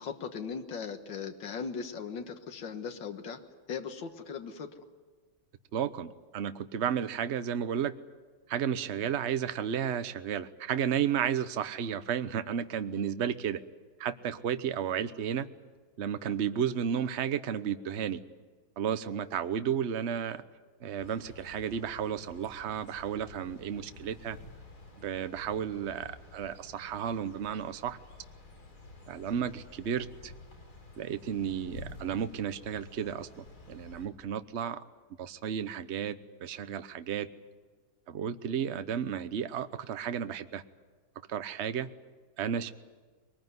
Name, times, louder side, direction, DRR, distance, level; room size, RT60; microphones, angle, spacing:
voice 1, 0.0-3.4 3.7-4.7, left 6 dB, 75° left, 6 dB, 2.2 m, -38 dB
voice 2, 5.7-7.9 8.5-13.6 14.0-15.5 16.0-18.2 18.8-20.4 20.8-24.4 25.0-28.0 29.1-30.3 31.0-34.8 35.2-37.3 38.1-40.6 41.3-41.9 42.4-42.7, right 8 dB, 50° right, 11 dB, 0.9 m, -33 dB
sound 1, 21.0-34.1, left 2 dB, 55° left, 3.8 m, -51 dB
22.5 x 20.5 x 9.5 m, 1.4 s
omnidirectional pair, 2.1 m